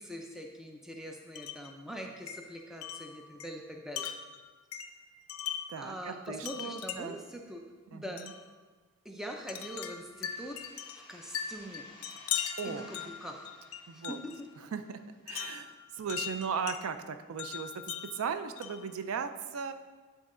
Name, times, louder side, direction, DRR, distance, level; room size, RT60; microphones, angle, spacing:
voice 1, 0.0-4.1 5.8-7.6 7.9-8.2 9.0-10.6 10.9-11.8 12.6-13.5 13.9-14.5, equal, ahead, 2 dB, 0.4 m, -43 dB
Wind chime, 1.3-1.7 2.3-5.8 6.4-7.3 8.2-8.4 9.5-14.4 15.3-16.8 17.4-18.9, left 9 dB, 75° left, 0.4 m, -40 dB
voice 2, 5.7-7.2 7.9-8.3 12.6-13.1 13.9-14.2 14.6-19.7, right 6 dB, 75° right, 9 dB, 0.4 m, -37 dB
sound 1, 10.1-15.6, left 1 dB, 20° left, 1.1 m, -56 dB
9.4 x 4.0 x 3.7 m, 1.4 s
head